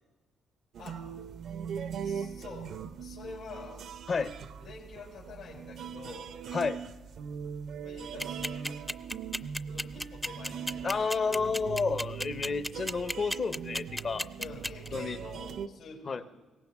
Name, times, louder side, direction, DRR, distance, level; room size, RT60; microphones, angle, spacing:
sound 1, 0.7-15.7, right 7 dB, 70° right, 0.6 m, -40 dB
voice 1, 0.8-1.1 2.0-3.8 4.6-6.3 7.8-8.9 9.7-11.3 14.4-16.2, left 3 dB, 80° left, -3 dB, 4.9 m, -47 dB
sound 2, 8.2-14.9, left 1 dB, 5° left, 0.5 m, -33 dB
voice 2, 10.8-14.3 14.9-15.2 16.1-16.2, left 4 dB, 40° left, 13 dB, 0.7 m, -31 dB
22.0 x 18.0 x 3.5 m, 1.2 s
cardioid pair, 90°, 0 cm